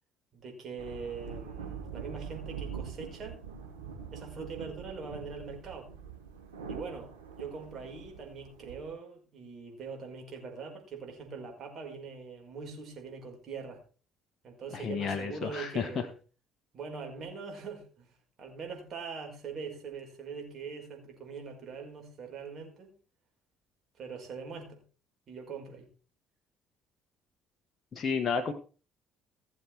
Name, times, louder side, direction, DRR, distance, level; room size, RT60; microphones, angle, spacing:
voice 1, 0.3-3.4 4.1-5.9 6.7-13.8 14.4-16.1 16.7-22.9 24.0-24.8 25.3-25.9, right 5 dB, 45° right, 2 dB, 5.2 m, -42 dB
sound 1, 0.8-8.9, right 6 dB, 80° right, 3.1 m, -43 dB
voice 2, 14.7-16.1 27.9-28.5, left 6 dB, 40° left, 6 dB, 1.4 m, -31 dB
16.0 x 7.3 x 4.7 m, 0.37 s
figure-of-eight pair, 50°, 0 cm